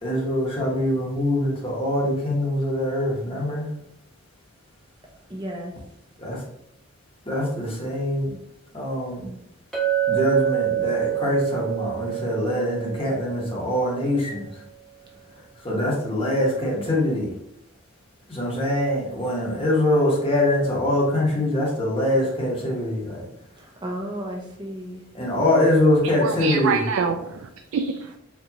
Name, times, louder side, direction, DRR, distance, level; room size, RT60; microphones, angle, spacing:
voice 1, 0.0-3.7 6.2-6.4 7.3-8.3 8.7-9.3 10.1-14.4 15.6-17.3 18.3-23.2 25.1-26.8, left 1 dB, 25° left, -4 dB, 1.1 m, -23 dB
voice 2, 5.3-5.8 23.6-25.0, equal, 20° right, -2 dB, 0.7 m, -33 dB
Chink clink, 9.7-14.2, right 12 dB, ahead, 1.0 m, -27 dB
voice 3, 26.0-28.2, right 5 dB, 75° right, 5 dB, 0.3 m, -27 dB
4.5 x 2.6 x 2.8 m, 0.75 s
head